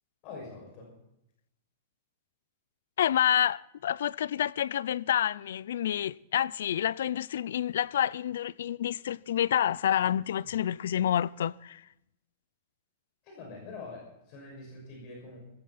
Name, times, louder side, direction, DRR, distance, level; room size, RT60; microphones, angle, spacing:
voice 1, 0.2-0.9 13.2-15.4, left 3 dB, 35° left, 6.0 m, -44 dB
voice 2, 3.0-11.8, left 10 dB, 80° left, 0.4 m, -28 dB
18.5 x 16.5 x 4.2 m
supercardioid pair, 165°, 0 cm